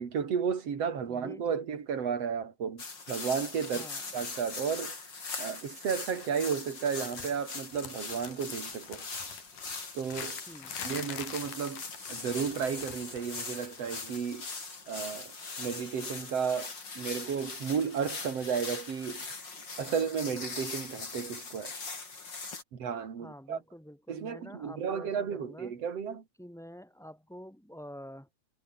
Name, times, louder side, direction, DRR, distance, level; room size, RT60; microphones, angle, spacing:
voice 1, 0.0-3.9 4.1-4.9 5.4-9.1 10.0-10.4 10.8-11.8 12.1-14.5 14.9-19.2 19.8-21.7 22.7-23.6 24.1-26.2, right 7 dB, 45° right, 3.4 m, -33 dB
voice 2, 1.0-1.6 3.7-4.1 10.5-10.8 23.2-25.7 26.4-28.3, equal, ahead, 4.6 m, -48 dB
sound 1, 2.8-22.6, left 4 dB, 30° left, 4.4 m, -41 dB
sound 2, 5.9-6.4 6.6-7.4 7.7-13.3 13.6-13.8 14.9-15.0, left 9 dB, 60° left, 3.6 m, -45 dB
omnidirectional pair, 4.5 m